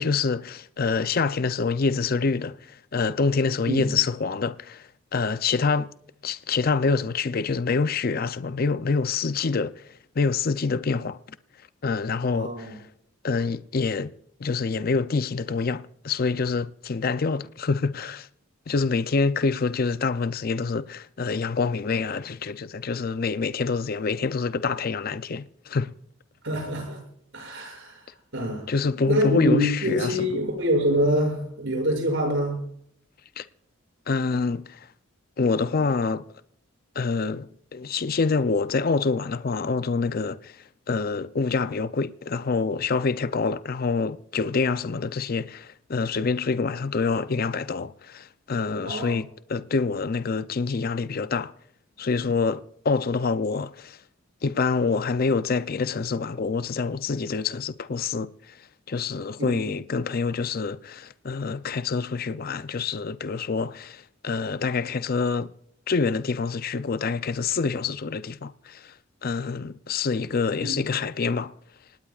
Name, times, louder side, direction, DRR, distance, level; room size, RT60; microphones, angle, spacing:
voice 1, 0.0-5.9 6.2-11.2 11.8-12.8 13.2-14.1 14.4-18.3 18.7-25.9 28.7-30.3 33.4-33.5 34.1-34.9 35.4-36.2 37.0-51.5 52.0-54.0 54.4-58.6 58.9-65.5 65.9-68.9 69.2-71.5, left 4 dB, 45° left, 0.5 m, -26 dB
voice 2, 12.3-12.8 26.4-27.0 27.3-28.6 29.1-32.6 48.8-49.2 59.4-59.6 70.6-70.8, equal, 65° right, 7.1 m, -26 dB
25.5 x 19.0 x 2.4 m
head